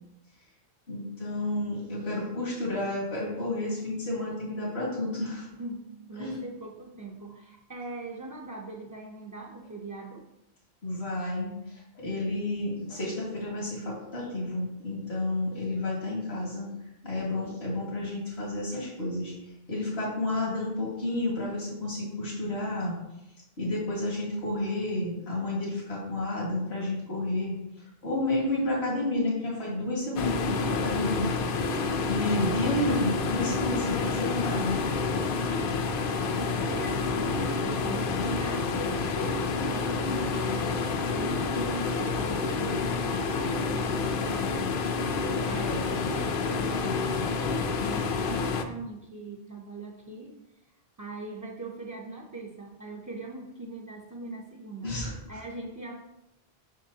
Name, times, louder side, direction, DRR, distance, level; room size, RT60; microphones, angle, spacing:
voice 1, 0.9-5.5 6.2-6.4 10.8-16.7 17.0-19.3 19.7-23.0 23.6-31.4 32.1-34.9 45.7-45.8 47.5-47.7 54.8-55.1, left 2 dB, 80° left, -5 dB, 2.1 m, -31 dB
voice 2, 5.5-10.3 26.8-26.9 36.3-44.5 45.5-50.4 51.0-55.0 55.3-55.9, right 3 dB, 25° right, -3 dB, 0.4 m, -41 dB
sound 1, 30.2-48.6, left 4 dB, 60° left, 0.7 m, -29 dB
6.4 x 6.0 x 2.8 m, 0.88 s
omnidirectional pair, 1.1 m